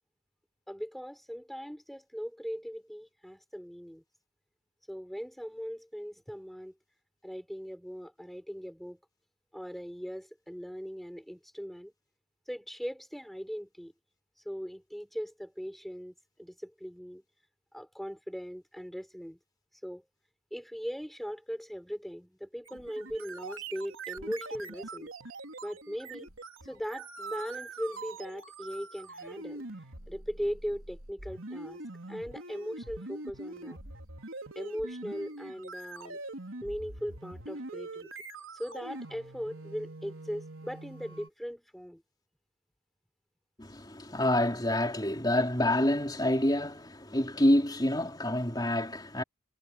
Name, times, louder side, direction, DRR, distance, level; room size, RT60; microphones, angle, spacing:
voice 1, 0.7-4.0 4.9-6.7 7.2-9.0 9.5-11.9 12.5-13.9 14.4-17.2 17.7-19.4 19.8-20.0 20.5-25.1 25.6-26.3 26.6-29.6 30.1-31.8 32.1-33.8 34.5-36.2 36.6-38.1 38.5-42.0, equal, ahead, 6.3 m, -39 dB
sound 1, 22.7-41.3, right 2 dB, 75° right, 3.9 m, -44 dB
voice 2, 43.6-49.2, left 1 dB, 20° left, 4.2 m, -27 dB
head